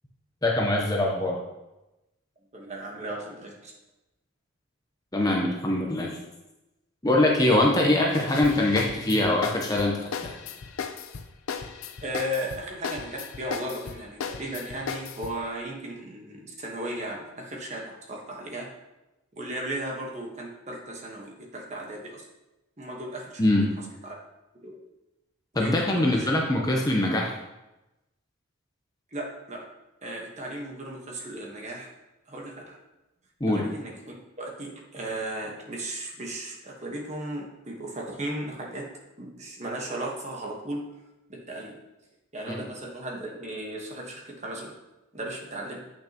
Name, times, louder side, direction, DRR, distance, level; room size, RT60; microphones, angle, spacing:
voice 1, 0.4-1.4 5.1-6.2 7.0-10.3 23.4-23.7 25.5-27.4 33.4-33.7 42.5-42.7, left 1 dB, 15° left, -1 dB, 0.7 m, -23 dB
voice 2, 2.5-3.7 12.0-18.7 19.4-22.2 22.8-23.4 24.0-24.2 24.6-24.7 25.6-26.3 29.1-29.7 30.0-31.9 32.3-32.8 33.5-38.8 39.2-40.8 41.3-41.8 42.3-44.7 45.1-45.8, right 1 dB, 30° right, -1 dB, 1.2 m, -36 dB
sound 1, 8.1-15.4, left 6 dB, 75° left, 0.5 m, -36 dB
8.3 x 6.1 x 2.9 m, 0.98 s
head